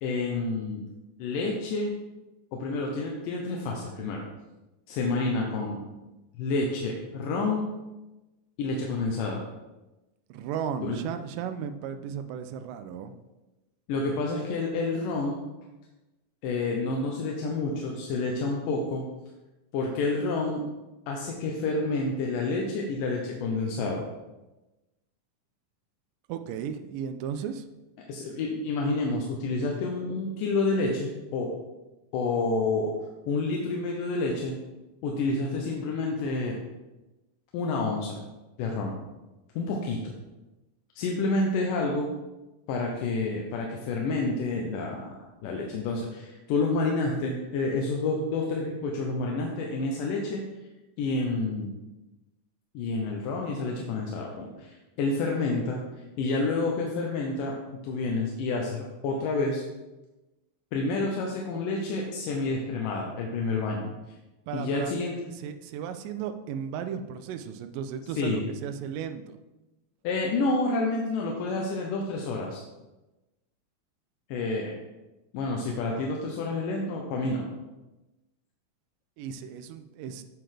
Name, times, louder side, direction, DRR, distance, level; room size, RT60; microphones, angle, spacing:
voice 1, 0.0-0.9 1.2-1.9 2.5-4.2 4.9-5.9 6.4-7.7 8.6-9.4 10.9-11.0 13.9-15.4 16.4-19.0 19.7-20.6 21.1-24.0 28.1-31.5 32.1-32.9 33.3-34.6 35.0-36.6 37.5-38.2 38.6-39.0 39.6-40.1 41.0-42.1 42.7-45.1 45.4-50.4 51.0-51.7 52.7-55.8 56.2-57.5 57.8-59.6 60.7-63.9 64.5-65.1 68.2-68.4 70.0-72.6 74.3-74.7 75.3-77.5, left 3 dB, 75° left, -1 dB, 2.2 m, -29 dB
voice 2, 10.3-13.1 26.3-27.7 64.5-64.9 65.3-69.4 79.2-80.2, right 8 dB, 85° right, 8 dB, 2.0 m, -35 dB
7.6 x 7.5 x 3.4 m, 1.1 s
omnidirectional pair, 4.4 m